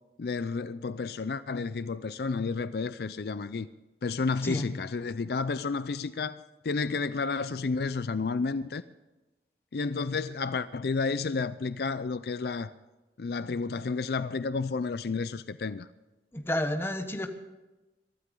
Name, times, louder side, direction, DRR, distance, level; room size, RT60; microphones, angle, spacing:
voice 1, 0.2-3.7 4.0-8.8 9.7-12.7 13.2-15.9, left 4 dB, 60° left, 0.4 m, -31 dB
voice 2, 16.3-17.3, left 1 dB, 15° left, 1.2 m, -30 dB
23.0 x 13.0 x 3.8 m
head